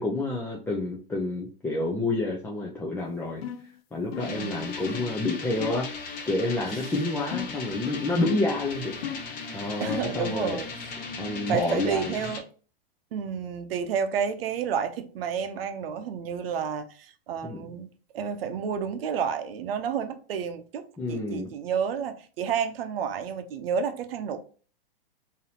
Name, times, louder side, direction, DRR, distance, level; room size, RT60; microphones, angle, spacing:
voice 1, 0.0-3.4 3.9-5.9 6.3-8.9 9.5-10.6 11.2-12.2 17.4-17.6 21.0-21.5, left 2 dB, 5° left, 0.5 m, -29 dB
sound 1, 3.4-3.7 4.1-4.4 4.9-5.1 5.6-5.9 7.3-7.7 8.2-8.6 9.0-9.4 9.9-10.2, left 9 dB, 75° left, 0.5 m, -35 dB
sound 2, 4.2-12.4, left 4 dB, 30° left, 1.0 m, -38 dB
voice 2, 4.3-4.7 9.8-10.9 11.3-12.4 13.1-17.9 18.1-24.4, right 7 dB, 70° right, 0.7 m, -30 dB
3.8 x 2.8 x 2.8 m
hypercardioid pair, 125°, 30 cm